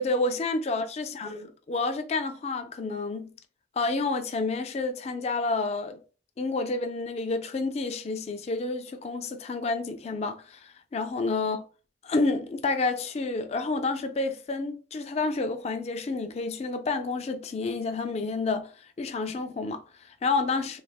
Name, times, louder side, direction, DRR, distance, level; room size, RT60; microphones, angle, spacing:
voice 1, 0.0-3.3 3.8-6.0 6.4-11.6 12.0-18.7 19.0-20.8, left 3 dB, 35° left, 0.3 m, -29 dB
3.1 x 2.0 x 2.3 m
head